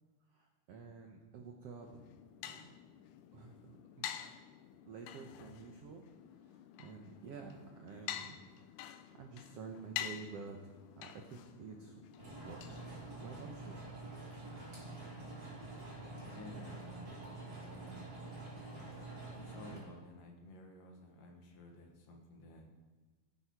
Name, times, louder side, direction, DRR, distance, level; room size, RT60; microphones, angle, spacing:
voice 1, 0.3-2.1 2.4-2.7 3.3-3.6 4.0-4.2 4.9-6.0 6.3-8.4 9.1-12.0 12.4-13.8, right 5 dB, 90° right, 2 dB, 1.3 m, -50 dB
sound 1, 1.8-13.5, left 11 dB, 80° left, 1.8 m, -48 dB
sound 2, 12.2-19.8, right 2 dB, 25° right, 4.2 m, -47 dB
voice 2, 16.3-17.1 17.6-18.1 19.3-22.7, left 1 dB, 65° left, 1 dB, 3.1 m, -53 dB
17.5 x 8.5 x 4.7 m, 1.3 s
omnidirectional pair, 4.3 m